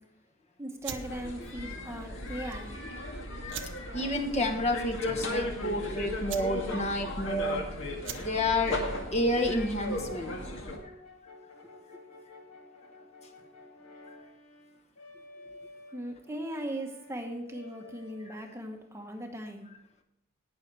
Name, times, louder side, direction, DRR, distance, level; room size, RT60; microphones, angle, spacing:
voice 1, 0.6-2.8 15.9-19.7, right 1 dB, 10° right, 3 dB, 1.0 m, -39 dB
sound 1, 0.8-10.3, right 9 dB, 55° right, 0.9 m, -47 dB
sound 2, 0.9-10.8, left 1 dB, 60° left, 2.0 m, -36 dB
Brass instrument, 3.9-18.7, left 2 dB, 90° left, 2.6 m, -52 dB
voice 2, 3.9-7.7 8.2-8.8 9.1-10.4 18.3-18.4, left 1 dB, 30° left, 3 dB, 1.2 m, -30 dB
18.5 x 6.4 x 4.7 m, 0.80 s
head